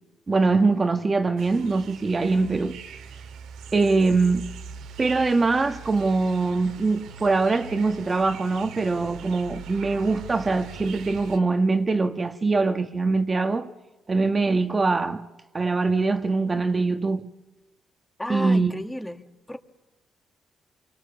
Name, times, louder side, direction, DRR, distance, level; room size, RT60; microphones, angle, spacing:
voice 1, 0.3-2.8 3.7-4.6 5.0-13.7 14.1-15.3 15.5-17.3 18.3-18.7, right 3 dB, 30° right, 1.3 m, -23 dB
sound 1, 1.4-11.4, right 6 dB, 80° right, 1.9 m, -41 dB
voice 2, 18.2-19.6, left 1 dB, 10° left, 1.9 m, -33 dB
29.0 x 24.5 x 7.1 m
cardioid pair, 90°, 0 cm